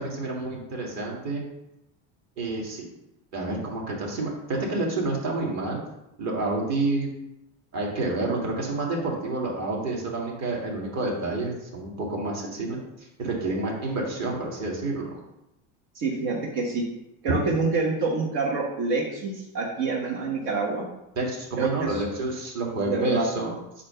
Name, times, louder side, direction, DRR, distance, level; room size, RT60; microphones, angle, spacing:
voice 1, 0.0-1.4 2.4-2.9 3.3-5.8 6.2-7.1 7.7-12.8 13.2-15.2 17.3-17.4 21.2-23.5, right 2 dB, 40° right, -2 dB, 2.0 m, -29 dB
voice 2, 15.9-16.8 17.2-20.9 21.6-22.0 22.9-23.2, right 4 dB, 70° right, -1 dB, 1.5 m, -27 dB
8.4 x 2.8 x 5.7 m, 0.85 s
cardioid pair, 155°, 40 cm